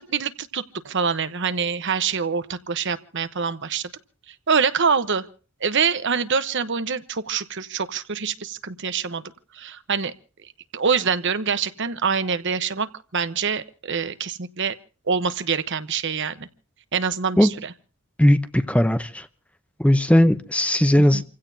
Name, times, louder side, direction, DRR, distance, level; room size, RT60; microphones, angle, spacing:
voice 1, 0.0-3.9 4.3-5.3 5.6-9.2 9.5-10.1 10.7-14.7 15.1-16.5 16.9-17.7 21.1-21.2, right 6 dB, 55° right, 1.0 m, -25 dB
voice 2, 18.2-19.3 19.8-21.2, left 1 dB, 5° left, 0.7 m, -18 dB
29.0 x 16.0 x 2.8 m
head